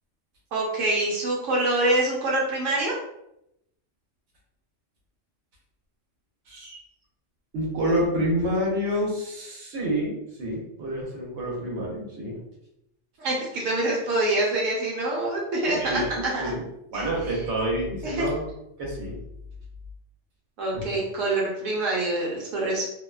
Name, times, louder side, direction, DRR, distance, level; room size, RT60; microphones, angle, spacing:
voice 1, 0.5-3.0 13.2-16.4 16.9-17.1 18.0-18.3 20.6-22.9, right 2 dB, 90° right, -3 dB, 1.0 m, -25 dB
voice 2, 6.5-6.8 7.5-12.4 15.7-16.7 16.9-18.5 18.8-19.2 20.7-20.8, equal, 70° right, -3 dB, 1.0 m, -28 dB
2.5 x 2.1 x 2.3 m, 0.82 s
omnidirectional pair, 1.3 m